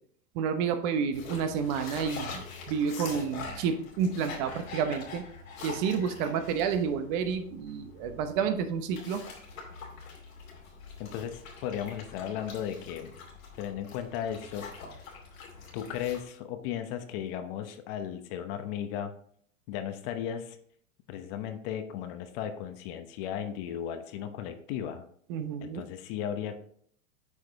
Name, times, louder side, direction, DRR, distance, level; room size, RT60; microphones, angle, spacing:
voice 1, 0.3-5.3 5.6-9.2 25.3-25.8, right 6 dB, 45° right, 9 dB, 0.9 m, -30 dB
sound 1, 1.1-16.2, left 4 dB, 85° left, 2.6 m, -44 dB
voice 2, 11.0-13.1 13.6-15.0 15.7-19.1 19.7-20.6 21.1-25.1 25.6-26.5, left 9 dB, 45° left, 8 dB, 1.0 m, -36 dB
8.3 x 4.9 x 3.5 m, 0.62 s
hypercardioid pair, 115°, 40 cm